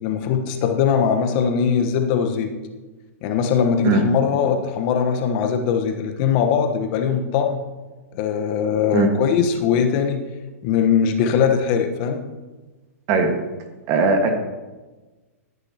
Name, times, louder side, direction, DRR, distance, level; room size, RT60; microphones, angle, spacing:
voice 1, 0.0-2.5 3.2-7.6 8.1-10.2 10.6-12.2, left 7 dB, 45° left, 5 dB, 1.2 m, -20 dB
voice 2, 13.9-14.3, right 3 dB, 40° right, 5 dB, 1.6 m, -18 dB
14.5 x 9.6 x 2.9 m, 1.2 s
hypercardioid pair, 120°, 8 cm